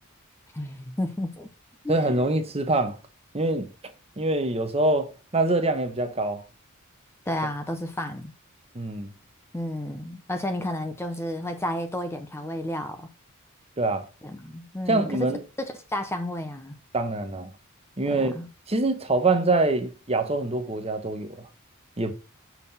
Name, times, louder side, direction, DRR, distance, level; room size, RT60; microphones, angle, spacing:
voice 1, 0.5-1.5 1.8-2.0 7.3-8.3 9.5-13.1 14.2-15.3 15.6-16.8 18.1-18.5, left 1 dB, 10° left, 0.6 m, -31 dB
voice 2, 1.9-3.0 3.3-3.7 4.2-6.4 8.7-9.1 13.8-14.1 14.9-15.4 16.9-17.5 18.0-18.4 18.7-21.5 22.0-22.1, right 2 dB, 30° right, 1.1 m, -24 dB
6.4 x 5.6 x 4.2 m
head